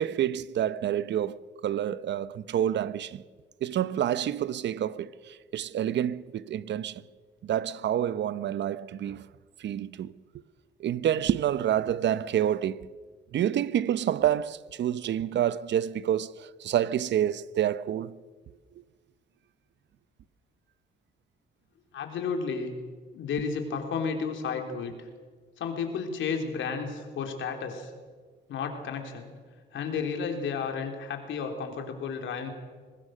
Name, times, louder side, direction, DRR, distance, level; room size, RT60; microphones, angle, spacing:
voice 1, 0.0-3.2 3.6-7.0 7.4-9.3 9.6-10.1 10.8-12.9 13.3-18.2, right 10 dB, 65° right, 0.8 m, -28 dB
voice 2, 21.9-22.7 23.1-25.1 25.6-27.9 28.5-29.3 29.7-32.5, left 5 dB, 75° left, 3.7 m, -32 dB
23.5 x 19.5 x 6.5 m
cardioid pair, 90°, 20 cm